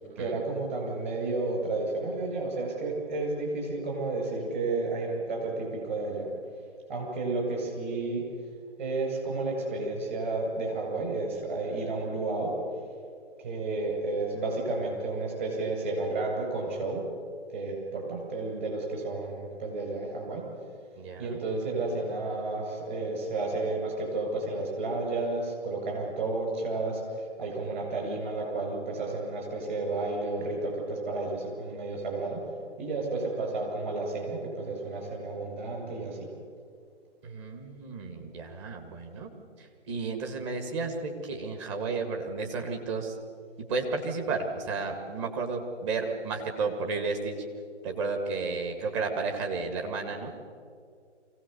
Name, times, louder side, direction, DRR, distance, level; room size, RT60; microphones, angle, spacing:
voice 1, 0.2-6.3 6.9-8.2 8.8-12.6 13.4-17.0 17.5-20.5 21.2-32.4 32.8-36.3, right 3 dB, 40° right, 0 dB, 7.8 m, -32 dB
voice 2, 21.0-21.4 37.2-39.3 39.6-43.1 43.7-47.4 47.8-50.4, right 4 dB, 25° right, 3 dB, 2.1 m, -32 dB
24.0 x 17.0 x 7.0 m, 2.2 s
figure-of-eight pair, 145°, 35 cm